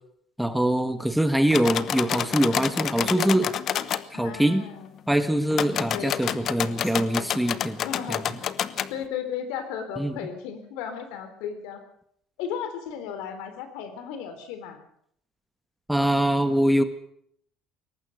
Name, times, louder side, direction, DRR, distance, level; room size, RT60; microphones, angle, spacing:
voice 1, 0.4-3.5 4.1-4.6 5.1-7.8 8.1-8.4 10.0-10.2 15.9-16.8, right 1 dB, 5° right, 9 dB, 1.5 m, -23 dB
sound 1, 1.5-4.0 5.5-8.9, left 9 dB, 45° left, 1.0 m, -29 dB
voice 2, 4.1-4.9 5.9-6.2 7.8-8.4 8.9-11.8 12.4-14.8, left 8 dB, 90° left, 9 dB, 3.9 m, -35 dB
21.0 x 18.5 x 6.6 m, 0.70 s
cardioid pair, 135°, 0 cm